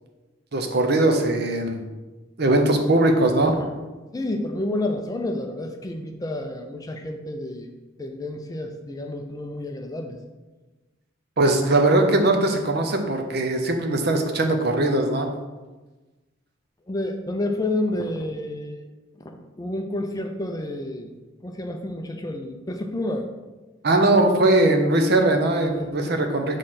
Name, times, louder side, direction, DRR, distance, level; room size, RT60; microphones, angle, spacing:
voice 1, 0.5-1.8 2.4-3.5 11.4-15.3 23.8-26.6, right 2 dB, 50° right, 4 dB, 0.7 m, -20 dB
voice 2, 4.1-7.7 8.0-10.2 16.9-18.8 19.6-21.1 21.4-23.3 25.6-25.9, left 1 dB, 20° left, 4 dB, 0.4 m, -29 dB
6.4 x 3.2 x 5.7 m, 1.2 s
head